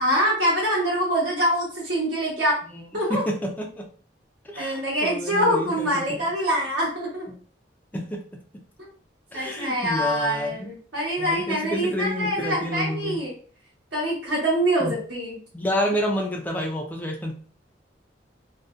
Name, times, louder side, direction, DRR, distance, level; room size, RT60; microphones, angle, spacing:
voice 1, 0.0-2.6 2.9-3.2 4.6-7.3 9.3-13.3 13.9-15.4, equal, 75° right, -6 dB, 1.0 m, -24 dB
voice 2, 3.1-3.8 4.4-6.2 7.3-7.4 7.9-8.2 9.3-10.8 11.2-13.2 14.8-14.9 15.5-17.3, equal, 10° left, 0 dB, 0.3 m, -29 dB
2.5 x 2.1 x 2.3 m, 0.43 s
head